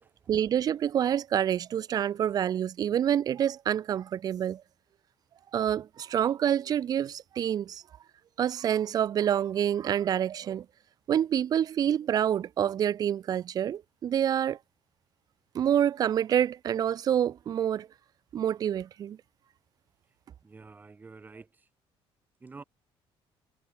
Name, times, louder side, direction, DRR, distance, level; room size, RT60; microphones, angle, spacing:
voice 1, 0.3-4.6 5.5-7.8 8.4-10.7 11.1-14.6 15.5-17.9 18.3-19.2, right 9 dB, 40° right, 0.8 m, -27 dB
voice 2, 20.4-21.7 22.4-22.6, right 4 dB, 15° right, 3.9 m, -48 dB
cardioid pair, 170°, 10 cm